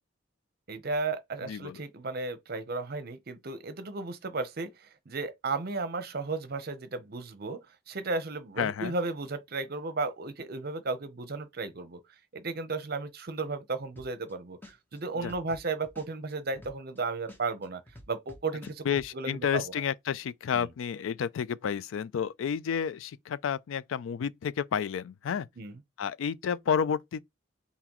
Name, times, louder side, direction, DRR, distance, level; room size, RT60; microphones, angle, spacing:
voice 1, 0.7-12.0 12.3-17.8 18.1-18.9 19.1-19.7 20.5-20.7 25.6-25.8, right 3 dB, 50° right, 0.7 m, -34 dB
voice 2, 1.5-1.8 8.6-8.9 15.2-15.3 18.9-25.5 26.0-27.2, left 7 dB, 90° left, 0.4 m, -31 dB
sound 1, 14.0-14.3 14.6-17.0 17.3-19.1, left 1 dB, 10° left, 1.0 m, -49 dB
4.1 x 3.9 x 3.0 m
head